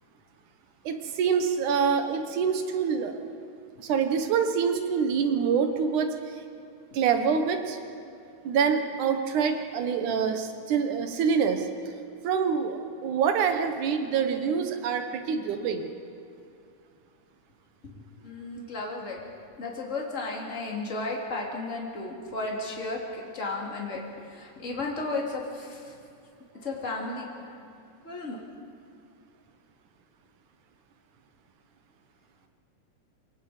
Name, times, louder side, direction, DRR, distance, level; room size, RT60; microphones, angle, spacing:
voice 1, 0.8-3.1 3.8-6.1 6.9-7.8 8.4-11.6 12.2-15.9, right 6 dB, 75° right, 6 dB, 2.8 m, -26 dB
voice 2, 17.8-19.2 19.6-24.0 24.3-25.9 26.6-27.6 28.0-28.4, left 2 dB, 25° left, -1 dB, 3.0 m, -34 dB
28.0 x 18.5 x 5.1 m, 2.5 s
omnidirectional pair, 3.6 m